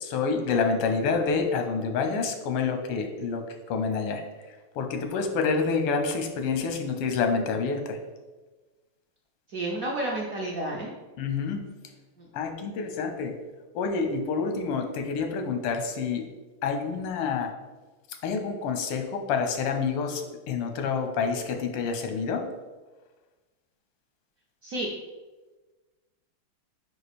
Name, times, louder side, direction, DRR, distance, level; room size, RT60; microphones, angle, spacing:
voice 1, 0.0-4.2 4.8-8.0 11.2-11.6 12.3-13.3 13.7-16.3 16.6-17.5 18.2-22.4, left 5 dB, 90° left, 5 dB, 1.7 m, -28 dB
voice 2, 9.5-10.9 12.2-12.3 24.6-24.9, right 1 dB, 65° right, -3 dB, 0.8 m, -31 dB
4.9 x 4.9 x 4.2 m, 1.2 s
omnidirectional pair, 2.4 m